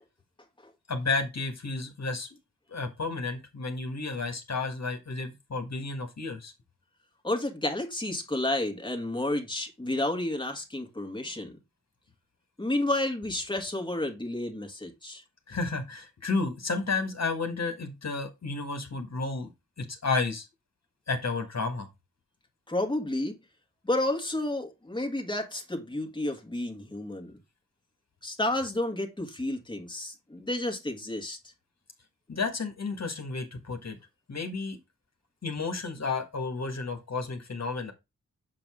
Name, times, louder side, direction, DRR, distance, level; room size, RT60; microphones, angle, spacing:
voice 1, 0.9-2.3 2.7-6.5 15.5-19.5 19.8-20.5 21.1-21.9 32.3-34.0 34.3-34.8 35.4-37.9, left 3 dB, 55° left, 1.6 m, -32 dB
voice 2, 7.2-11.5 12.6-15.2 22.7-23.4 23.9-27.3 28.2-31.4, left 1 dB, 15° left, 1.6 m, -31 dB
7.0 x 4.8 x 3.5 m
wide cardioid pair, 85°, 32 cm